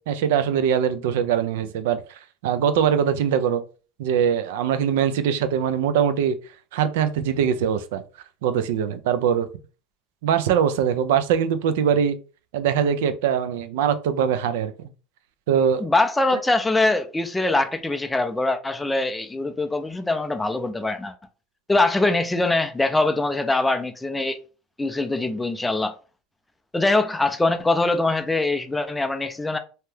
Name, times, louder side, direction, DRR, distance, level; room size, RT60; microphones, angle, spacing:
voice 1, 0.1-2.0 2.4-3.6 4.0-6.4 6.7-8.0 8.4-9.5 10.2-12.2 12.5-14.7 15.5-15.9 16.3-16.4, right 8 dB, 90° right, 0.3 m, -22 dB
voice 2, 15.8-21.1 21.7-24.4 24.8-25.9 26.7-29.6, left 2 dB, 10° left, 0.4 m, -23 dB
2.8 x 2.2 x 3.2 m
supercardioid pair, 140°, 0 cm